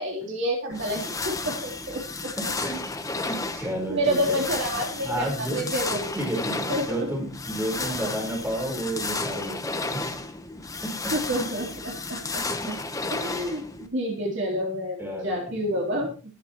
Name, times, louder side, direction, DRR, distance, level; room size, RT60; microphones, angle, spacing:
voice 1, 0.0-2.0 3.9-6.1 6.7-7.1 7.8-8.2 11.1-12.7 13.1-16.1, equal, 60° right, -1 dB, 3.5 m, -29 dB
sound 1, 0.7-13.9, left 3 dB, 15° left, 1.0 m, -33 dB
voice 2, 2.4-2.8 3.2-4.4 5.0-5.7 6.1-10.2 10.8-10.9 11.4-11.5 12.3-12.7 13.1-13.3 15.0-16.0, right 1 dB, 10° right, -1 dB, 4.4 m, -32 dB
19.0 x 8.2 x 3.0 m, 0.35 s
head